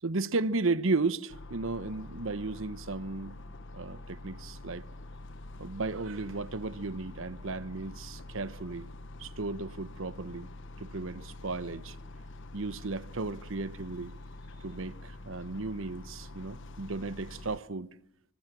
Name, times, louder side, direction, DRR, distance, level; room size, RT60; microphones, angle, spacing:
voice 1, 0.0-3.4 3.7-4.9 5.6-8.9 9.2-10.5 10.8-11.9 12.5-14.1 14.6-17.9, right 3 dB, 65° right, 1.0 m, -34 dB
sound 1, 1.3-17.6, left 2 dB, 60° left, 1.2 m, -46 dB
25.5 x 23.0 x 6.2 m
head